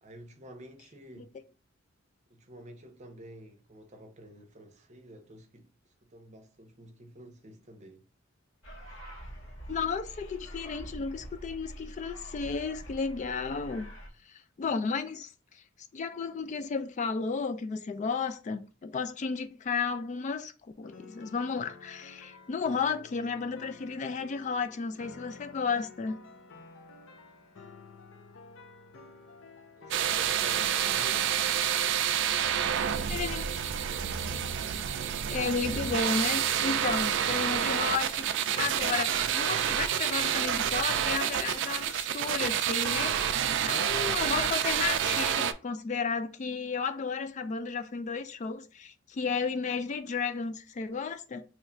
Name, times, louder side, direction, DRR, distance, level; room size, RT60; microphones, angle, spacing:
voice 1, 0.0-1.4 2.3-5.7 6.0-8.1 29.7-31.8, right 1 dB, 35° right, 0.7 m, -50 dB
sound 1, 8.6-14.1, equal, 90° left, 1.4 m, -45 dB
voice 2, 9.7-13.9 14.3-15.6 15.9-20.5 20.8-26.2 33.0-33.7 35.3-51.4, left 5 dB, 35° left, 0.3 m, -33 dB
sound 2, 20.8-31.9, left 4 dB, 70° left, 0.7 m, -51 dB
sound 3, 29.9-45.5, right 9 dB, 60° right, 0.3 m, -28 dB
3.0 x 2.4 x 4.2 m
head